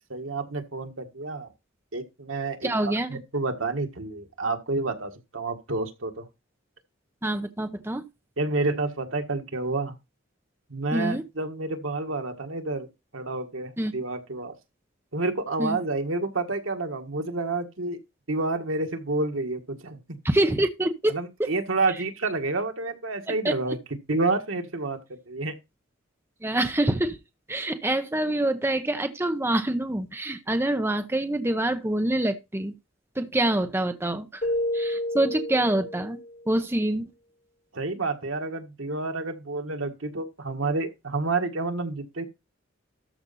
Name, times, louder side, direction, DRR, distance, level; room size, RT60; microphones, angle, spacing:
voice 1, 0.1-1.5 1.9-6.2 8.4-9.9 10.7-12.9 13.1-14.5 15.1-18.0 18.3-20.0 21.1-23.8 24.1-25.6 37.7-42.3, right 3 dB, 85° right, 1.7 m, -29 dB
voice 2, 2.6-3.1 7.2-8.0 10.9-11.2 13.8-13.9 15.6-15.8 20.2-21.1 21.4-21.5 23.3-23.5 26.4-27.2 27.5-32.7 33.2-34.4 34.7-36.2 36.5-37.1, right 1 dB, 10° right, 0.8 m, -26 dB
Keyboard (musical), 34.4-36.4, left 1 dB, 40° left, 4.9 m, -30 dB
13.0 x 5.2 x 4.1 m
head